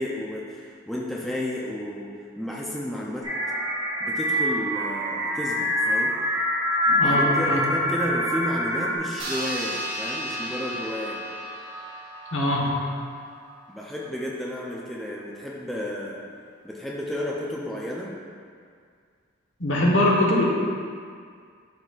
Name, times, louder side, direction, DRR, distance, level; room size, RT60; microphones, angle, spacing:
voice 1, 0.0-2.1 2.4-3.3 4.0-6.2 6.9-11.2 13.7-16.2 16.6-18.1, left 1 dB, ahead, -5 dB, 0.5 m, -32 dB
sound 1, 3.2-9.0, equal, 30° right, 1.6 m, -25 dB
voice 2, 7.0-7.7 12.3-12.7 19.6-20.4, left 1 dB, 70° left, -3 dB, 1.2 m, -22 dB
sound 2, 9.2-14.1, equal, 55° right, 1.1 m, -35 dB
12.0 x 4.0 x 2.4 m, 2.1 s
head